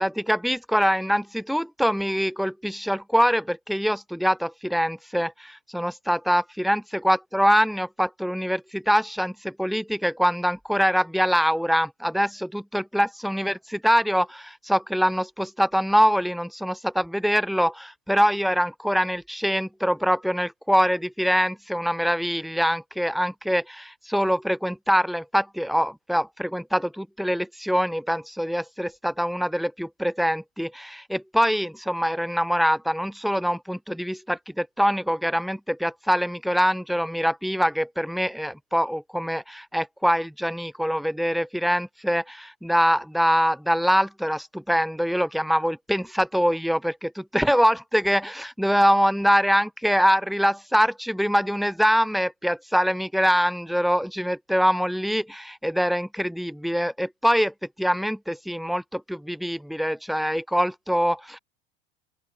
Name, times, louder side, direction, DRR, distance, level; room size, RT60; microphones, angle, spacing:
voice 1, 0.0-61.4, equal, ahead, 5.2 m, -24 dB
open air
figure-of-eight pair, 75°, 33 cm